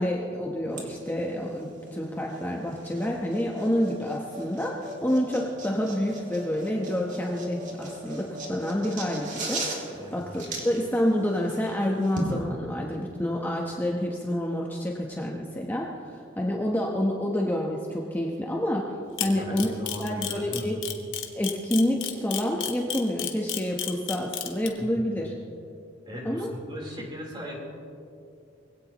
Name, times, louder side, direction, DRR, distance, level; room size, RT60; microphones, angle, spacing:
voice 1, 0.0-18.9 19.2-19.7 20.0-20.8 21.3-25.3 26.2-26.5, left 1 dB, 10° left, -1 dB, 1.0 m, -28 dB
sound 1, 0.7-12.3, right 1 dB, 45° right, 2.8 m, -38 dB
Camera, 19.2-24.7, left 10 dB, 90° left, 1.4 m, -31 dB
voice 2, 19.2-20.7 24.9-25.0 26.1-27.6, equal, 25° right, -2 dB, 3.8 m, -38 dB
22.5 x 16.5 x 3.0 m, 2.5 s
head